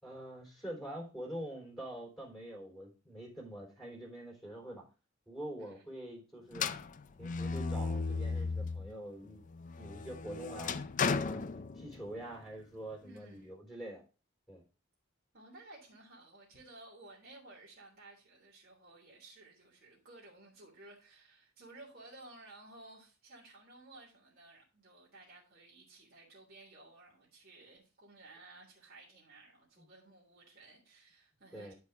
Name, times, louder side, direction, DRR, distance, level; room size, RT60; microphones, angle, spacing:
voice 1, 0.0-4.8 5.3-6.7 7.2-9.4 9.8-10.8 11.2-14.0 14.5-14.6 29.8-29.9 31.5-31.7, right 1 dB, ahead, 3.4 m, -45 dB
sound 1, 6.5-8.9 9.4-12.2, left 4 dB, 40° left, 0.5 m, -35 dB
voice 2, 13.0-13.5 15.3-31.7, right 2 dB, 50° right, 3.3 m, -56 dB
12.0 x 4.8 x 3.5 m
head